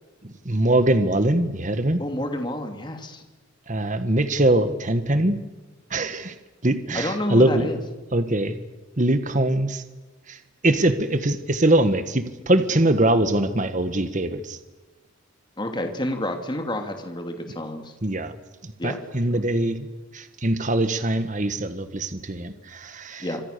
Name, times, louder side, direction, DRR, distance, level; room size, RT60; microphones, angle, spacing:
voice 1, 0.2-2.0 3.7-5.4 5.9-6.3 6.6-7.7 8.1-8.5 9.0-9.8 10.3-10.4 10.6-14.6 18.0-18.3 18.6-19.9 20.1-23.3, right 1 dB, 35° right, 10 dB, 1.5 m, -22 dB
voice 2, 2.0-3.2 6.9-7.8 15.6-17.9 18.8-19.0 23.2-23.4, left 1 dB, 20° left, 5 dB, 2.9 m, -29 dB
26.5 x 26.0 x 6.8 m, 1.2 s
head